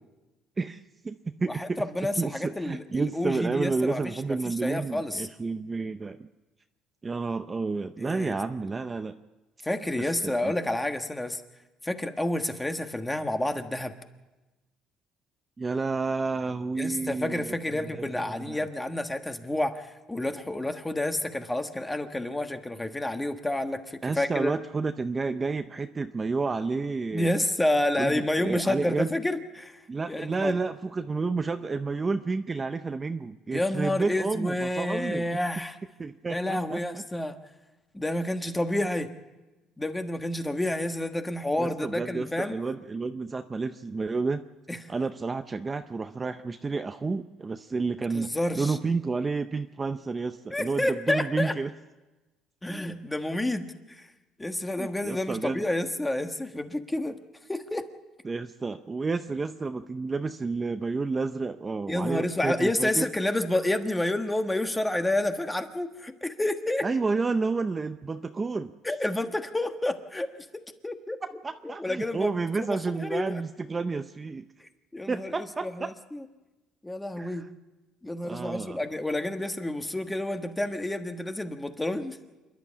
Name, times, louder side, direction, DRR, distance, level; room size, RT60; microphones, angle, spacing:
voice 1, 0.6-1.8 2.2-6.3 7.0-9.2 10.0-10.5 15.6-18.6 24.0-27.3 28.0-29.1 29.9-35.2 36.0-37.0 41.6-44.4 44.9-51.7 54.8-55.7 58.2-63.1 66.8-68.7 71.4-74.5 75.1-75.9 77.2-77.5 78.2-78.8, right 4 dB, 20° right, 8 dB, 0.6 m, -30 dB
voice 2, 1.5-5.3 8.0-8.3 9.6-11.4 11.8-13.9 16.8-24.5 27.1-29.8 30.1-30.6 33.5-35.8 36.3-37.4 37.9-39.1 39.8-42.6 44.7-44.8 48.1-48.8 50.5-51.5 52.6-54.1 54.4-57.2 57.5-57.9 61.9-66.8 68.8-70.5 70.8-71.2 71.6-73.4 74.6-76.2 76.8-77.4 78.0-82.2, left 1 dB, 10° left, 7 dB, 1.4 m, -29 dB
27.5 x 11.5 x 8.4 m, 1.1 s
cardioid pair, 125°, 0 cm